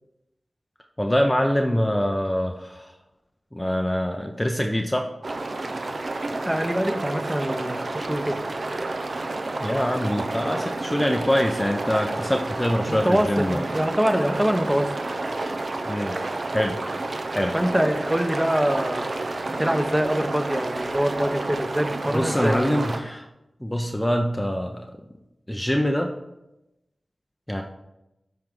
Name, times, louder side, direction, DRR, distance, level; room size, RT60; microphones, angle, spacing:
voice 1, 1.0-2.9 3.5-5.1 9.6-13.6 15.9-16.2 16.5-16.8 17.3-17.5 22.0-23.3 23.6-24.9 25.5-26.1 27.5-27.6, equal, 10° left, 3 dB, 0.6 m, -24 dB
sound 1, 5.2-23.0, right 2 dB, 55° right, 0.7 m, -30 dB
voice 2, 6.3-8.4 12.9-14.9 17.5-19.1 19.5-22.6, equal, 15° right, 5 dB, 0.9 m, -24 dB
13.0 x 4.6 x 3.8 m, 0.92 s
wide cardioid pair, 85°, 0 cm